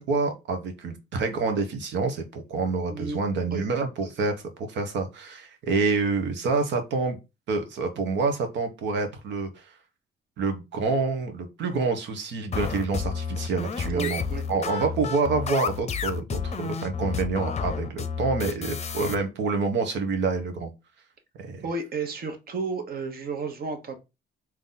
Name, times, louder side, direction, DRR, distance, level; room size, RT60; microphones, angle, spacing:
voice 1, 0.0-7.2 7.5-9.7 10.4-14.2 14.5-20.7 21.4-21.6, right 4 dB, 80° right, 6 dB, 1.1 m, -27 dB
voice 2, 2.9-3.2 3.5-3.6 13.9-14.4 14.7-14.8 21.6-24.0, right 4 dB, 55° right, 5 dB, 1.2 m, -32 dB
sound 1, 12.5-19.1, left 6 dB, 35° left, 0.6 m, -31 dB
3.8 x 3.0 x 3.8 m, 0.26 s
cardioid pair, 95°, 18 cm